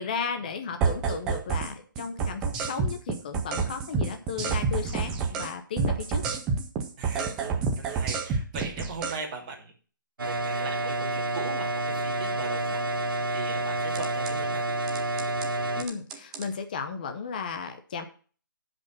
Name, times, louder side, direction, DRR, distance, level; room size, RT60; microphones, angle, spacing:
voice 1, 0.0-6.2 15.7-18.0, left 6 dB, 25° left, 6 dB, 0.8 m, -34 dB
sound 1, 0.8-1.7 2.0-5.5 5.8-9.2 13.9-14.3 14.9-15.5 15.8-16.5, right 5 dB, 5° right, 0.4 m, -28 dB
voice 2, 7.0-9.7 10.2-14.7, right 4 dB, 20° right, -1 dB, 2.6 m, -39 dB
sound 2, 10.2-15.8, right 1 dB, 80° right, 1.8 m, -29 dB
10.5 x 5.2 x 7.3 m, 0.40 s
hypercardioid pair, 175°, 11 cm